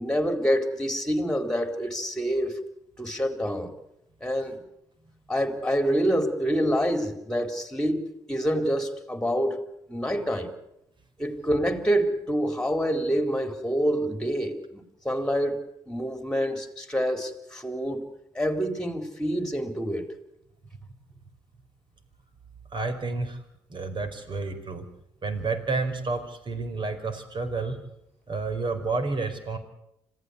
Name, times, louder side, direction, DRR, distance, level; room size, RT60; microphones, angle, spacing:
voice 1, 0.0-2.5 3.0-3.7 4.2-4.6 5.3-9.6 9.9-10.5 11.2-18.1 18.3-20.1, equal, 5° left, 8 dB, 4.2 m, -27 dB
voice 2, 22.7-23.4 23.7-24.9 25.2-27.8 28.3-29.6, right 3 dB, 45° right, 9 dB, 4.5 m, -30 dB
26.5 x 16.0 x 8.3 m, 0.80 s
hypercardioid pair, 50°, 11 cm